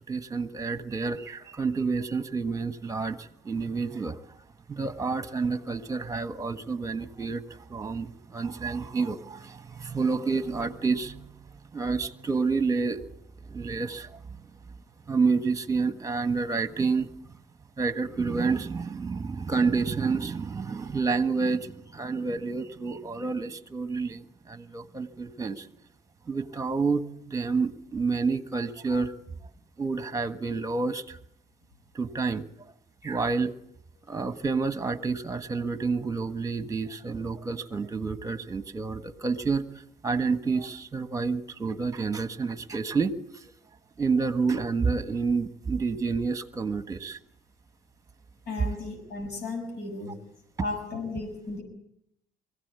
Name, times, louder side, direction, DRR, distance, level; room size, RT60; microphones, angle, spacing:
voice 1, 0.1-4.2 4.7-13.0 13.5-14.5 15.1-17.1 17.8-25.7 26.3-29.1 29.8-31.2 31.9-32.4 33.0-33.5 34.1-39.6 40.0-43.5 44.0-47.2, right 4 dB, 20° right, 12 dB, 1.5 m, -29 dB
voice 2, 48.5-50.2 50.6-51.6, left 3 dB, 75° left, 3 dB, 6.3 m, -35 dB
23.5 x 16.5 x 8.3 m, 0.75 s
cardioid pair, 110°, 17 cm